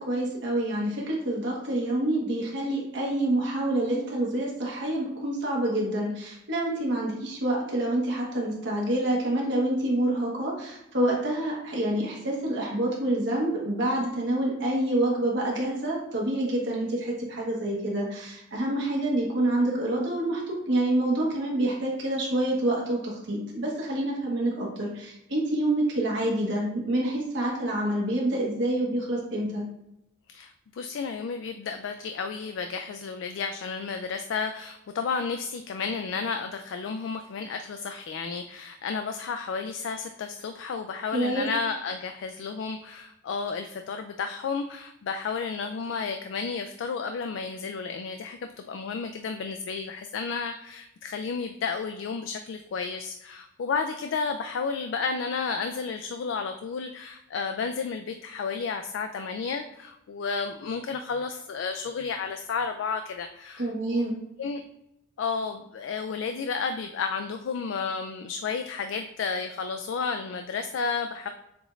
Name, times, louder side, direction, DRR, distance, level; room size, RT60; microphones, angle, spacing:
voice 1, 0.0-29.6 41.1-41.5 63.6-64.2, right 1 dB, 65° right, -3 dB, 1.1 m, -27 dB
voice 2, 30.3-64.0 64.4-64.6 65.2-71.3, left 5 dB, 70° left, 6 dB, 0.3 m, -32 dB
6.8 x 2.5 x 3.1 m, 0.86 s
head